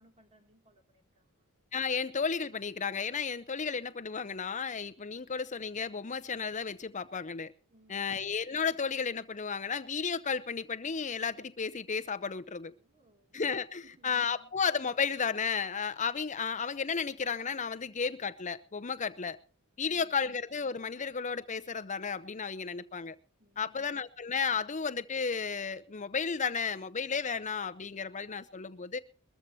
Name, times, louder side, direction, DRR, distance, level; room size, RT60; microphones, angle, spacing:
voice 1, 0.0-1.4 7.7-8.3 12.6-13.4 13.8-14.5 19.9-20.4 23.4-24.0, right 1 dB, 30° right, 2.7 m, -64 dB
voice 2, 1.7-7.5 7.9-12.7 13.3-19.4 19.8-23.2 23.6-29.0, left 5 dB, 35° left, 0.8 m, -33 dB
22.0 x 14.0 x 2.8 m
head